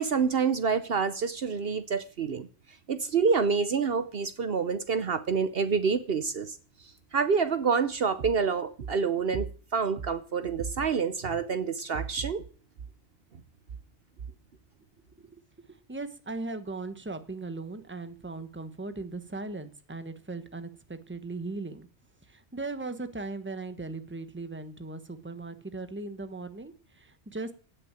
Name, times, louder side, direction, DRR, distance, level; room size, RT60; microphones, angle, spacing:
voice 1, 0.0-2.5 2.9-6.5 7.1-12.4, right 5 dB, 60° right, 1.0 m, -27 dB
voice 2, 15.7-21.9 22.3-27.5, right 3 dB, 10° right, 1.2 m, -38 dB
16.5 x 6.6 x 8.9 m
omnidirectional pair, 1.2 m